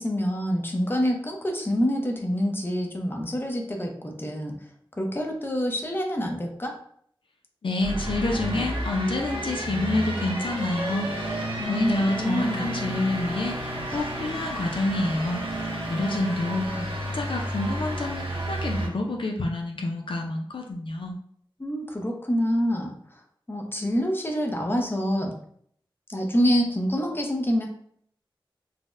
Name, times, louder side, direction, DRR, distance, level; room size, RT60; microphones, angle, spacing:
voice 1, 0.0-4.5 5.0-6.8 11.6-12.7 16.0-16.3 16.8-16.9 21.6-22.9 23.5-25.3 26.1-27.7, equal, 25° left, 2 dB, 0.6 m, -26 dB
voice 2, 7.6-11.4 11.7-15.4 15.9-21.2, left 2 dB, 70° left, 1 dB, 0.4 m, -28 dB
sound 1, 7.8-18.9, right 1 dB, 80° right, 0.7 m, -31 dB
3.9 x 2.0 x 2.4 m, 0.64 s
wide cardioid pair, 50°, 9 cm